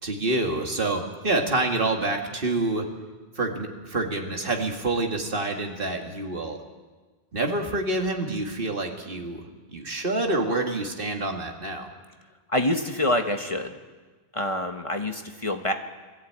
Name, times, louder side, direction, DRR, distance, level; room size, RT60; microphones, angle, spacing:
voice 1, 0.0-2.9 3.4-6.6 7.3-11.9, right 2 dB, 60° right, 3 dB, 2.2 m, -27 dB
voice 2, 12.5-13.7 14.3-15.7, left 1 dB, 35° left, 5 dB, 1.2 m, -26 dB
21.0 x 14.5 x 8.7 m, 1.4 s
omnidirectional pair, 1.0 m